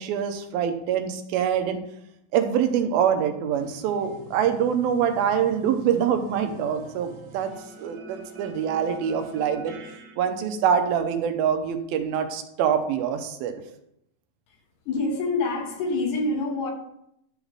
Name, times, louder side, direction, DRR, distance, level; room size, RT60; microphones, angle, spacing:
voice 1, 0.0-1.8 2.3-7.5 7.8-9.7 10.2-13.5, right 8 dB, 90° right, 6 dB, 2.7 m, -25 dB
sound 1, 3.5-10.1, right 2 dB, 60° right, 2.3 m, -46 dB
voice 2, 14.9-16.7, left 3 dB, 70° left, 2 dB, 2.7 m, -26 dB
12.0 x 4.1 x 4.7 m, 0.76 s
omnidirectional pair, 4.2 m